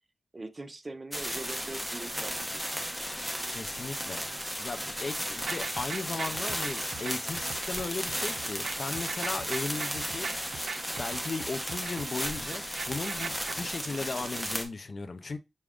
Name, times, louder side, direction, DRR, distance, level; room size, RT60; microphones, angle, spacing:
voice 1, 0.3-2.8, right 2 dB, 35° right, 0.5 m, -42 dB
sound 1, 1.1-14.6, equal, 5° right, 0.9 m, -35 dB
voice 2, 3.5-4.3 4.6-10.3 11.0-15.4, left 3 dB, 50° left, 0.5 m, -36 dB
sound 2, 5.4-14.5, right 5 dB, 85° right, 0.4 m, -41 dB
6.0 x 2.1 x 3.6 m
wide cardioid pair, 95°, 0 cm